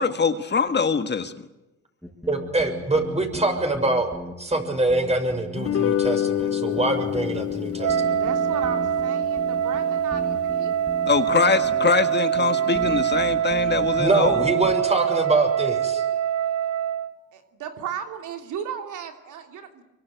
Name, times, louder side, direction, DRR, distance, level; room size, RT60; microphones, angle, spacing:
voice 1, 0.0-1.3 11.1-14.5, left 5 dB, 35° left, 9 dB, 1.7 m, -23 dB
sound 1, 2.0-14.7, left 1 dB, ahead, 6.0 m, -38 dB
voice 2, 2.3-4.1 4.4-8.2 14.0-16.0, right 2 dB, 20° right, 5 dB, 6.9 m, -24 dB
sound 2, 5.6-12.1, left 11 dB, 50° left, 1.1 m, -29 dB
Wind instrument woodwind instrument, 7.8-17.2, right 10 dB, 60° right, 1.0 m, -24 dB
voice 3, 8.2-10.7 17.3-19.8, right 8 dB, 80° right, 6 dB, 3.1 m, -35 dB
25.0 x 24.0 x 8.2 m, 1.0 s
cardioid pair, 90°, 30 cm